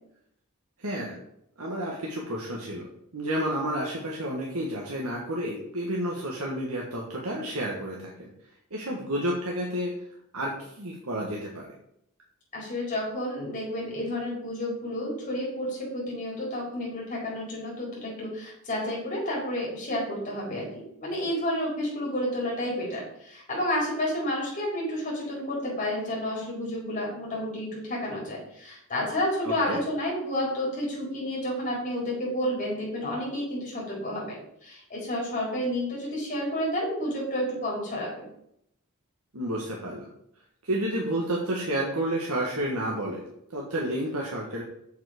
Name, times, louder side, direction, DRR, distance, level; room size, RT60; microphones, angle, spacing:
voice 1, 0.8-1.1 1.6-2.9 3.1-8.3 8.7-10.0 10.3-11.7 29.4-29.8 39.3-40.1 40.6-43.2 43.5-44.6, right 1 dB, 85° right, -2 dB, 1.5 m, -30 dB
voice 2, 12.5-20.7 21.0-38.3, left 1 dB, 35° left, -5 dB, 4.1 m, -30 dB
7.3 x 7.2 x 5.1 m, 0.74 s
head